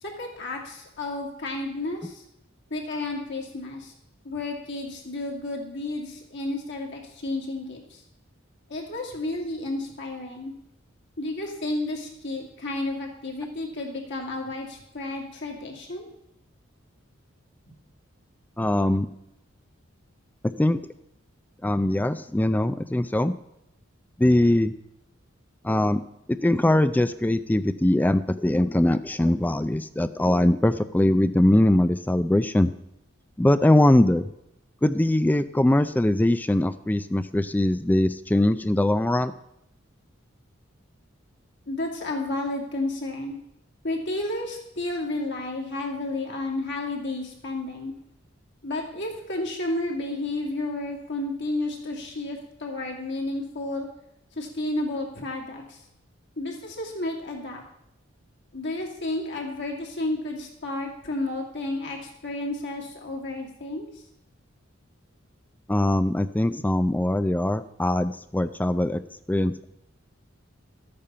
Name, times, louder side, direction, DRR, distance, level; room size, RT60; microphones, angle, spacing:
voice 1, 0.0-2.2 2.7-3.9 4.2-8.0 8.7-10.5 11.2-16.1 41.7-43.4 43.8-47.9 48.6-53.9 54.4-55.8 56.4-57.6 58.5-63.9, left 2 dB, 60° left, 0 dB, 2.6 m, -31 dB
voice 2, 18.6-19.1 20.4-20.8 21.6-23.3 24.2-24.7 25.6-26.0 26.3-32.7 33.4-34.3 34.8-39.3 65.7-69.0 69.3-69.6, left 1 dB, 10° left, 12 dB, 0.4 m, -22 dB
13.0 x 8.7 x 5.6 m, 0.82 s
head